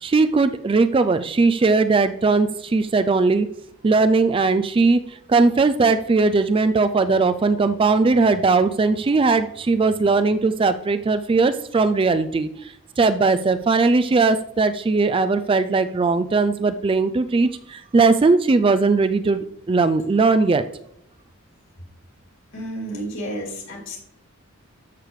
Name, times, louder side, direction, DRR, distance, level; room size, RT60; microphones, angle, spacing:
voice 1, 0.0-3.5 3.8-20.6, right 3 dB, 25° right, 11 dB, 0.3 m, -19 dB
voice 2, 22.5-24.0, right 1 dB, 60° left, -3 dB, 2.8 m, -31 dB
12.5 x 6.6 x 3.2 m, 0.73 s
head